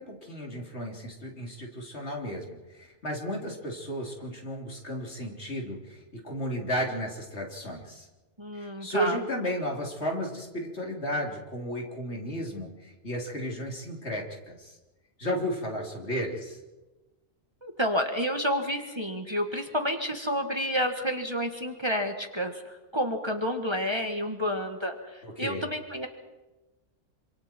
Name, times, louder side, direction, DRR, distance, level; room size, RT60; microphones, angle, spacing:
voice 1, 0.0-8.1 8.5-14.8 15.2-16.6 25.2-25.7, equal, 60° left, 0 dB, 3.7 m, -34 dB
voice 2, 8.4-9.2 17.6-26.1, equal, 20° right, 4 dB, 1.9 m, -30 dB
27.5 x 26.5 x 4.6 m, 1.1 s
omnidirectional pair, 1.3 m